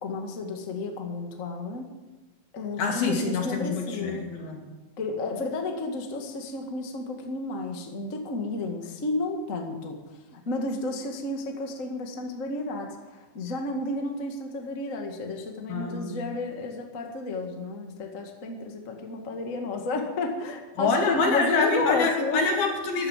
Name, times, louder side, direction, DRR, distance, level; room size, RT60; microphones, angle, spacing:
voice 1, 0.0-1.9 2.5-4.3 5.0-10.0 10.3-22.4, left 2 dB, 30° left, 2 dB, 1.5 m, -32 dB
voice 2, 2.8-4.6 15.7-16.2 20.8-23.1, left 4 dB, 75° left, 1 dB, 4.6 m, -26 dB
14.0 x 12.5 x 7.4 m, 1.2 s
omnidirectional pair, 4.3 m